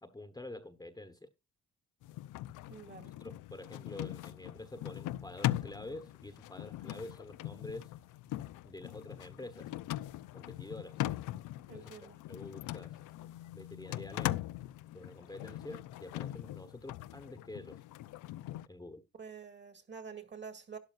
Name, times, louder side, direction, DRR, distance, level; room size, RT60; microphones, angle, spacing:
voice 1, 0.0-1.3 3.2-7.9 8.6-9.7 10.3-11.0 11.7-13.0 13.5-14.4 14.9-17.8 18.7-19.1, left 2 dB, 10° left, 1.2 m, -47 dB
sound 1, 2.0-18.7, left 15 dB, 85° left, 0.6 m, -40 dB
voice 2, 2.7-3.1 11.7-12.2 19.2-20.8, right 6 dB, 35° right, 2.1 m, -47 dB
12.5 x 10.5 x 2.5 m
cardioid pair, 90°, 30 cm